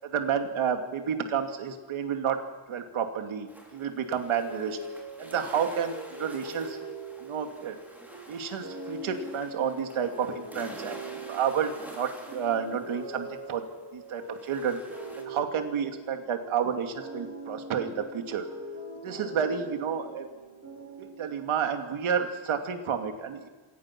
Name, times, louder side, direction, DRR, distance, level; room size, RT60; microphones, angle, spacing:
voice 1, 0.0-2.4 2.7-4.8 5.2-6.8 7.2-7.8 8.3-11.0 11.3-13.6 13.9-14.8 15.2-18.5 19.0-20.3 21.0-23.5, right 7 dB, 80° right, 5 dB, 2.6 m, -30 dB
sound 1, 3.5-13.8 14.1-15.2, equal, 5° right, 5.5 m, -49 dB
sound 2, 4.4-21.6, right 2 dB, 35° right, 7.3 m, -43 dB
26.0 x 18.5 x 6.1 m, 1.2 s
cardioid pair, 100°, 48 cm